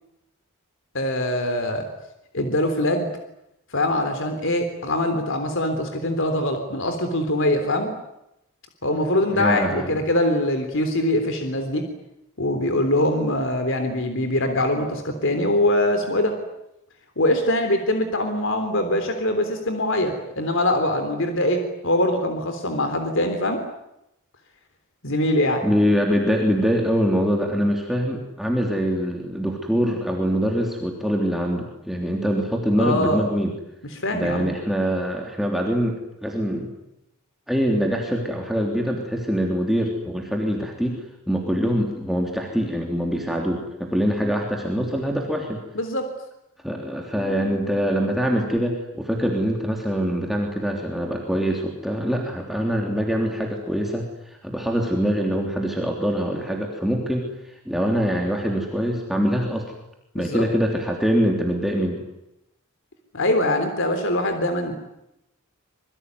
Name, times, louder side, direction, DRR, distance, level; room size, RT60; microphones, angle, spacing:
voice 1, 0.9-1.8 2.3-3.1 3.7-7.9 8.8-11.8 12.4-16.3 17.1-23.6 25.0-25.6 32.8-33.3 33.9-34.5 45.7-46.1 60.1-60.5 63.1-64.8, left 1 dB, 60° left, 6 dB, 3.6 m, -23 dB
voice 2, 9.3-9.9 25.6-33.5 34.1-36.7 37.5-45.6 46.6-59.6 60.1-62.0, equal, ahead, 0 dB, 3.3 m, -24 dB
26.5 x 23.5 x 9.6 m, 0.86 s
head